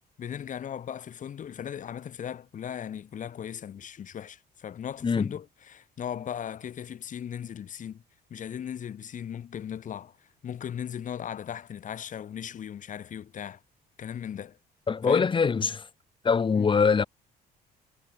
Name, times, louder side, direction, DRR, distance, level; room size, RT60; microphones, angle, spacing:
voice 1, 0.2-8.0 8.3-10.1 10.4-13.6 14.0-14.6 15.0-15.3 16.6-16.8, left 9 dB, 50° left, 6.0 m, -37 dB
voice 2, 14.9-15.8 16.2-17.0, left 5 dB, 30° left, 2.2 m, -23 dB
cardioid pair, 110°, 17 cm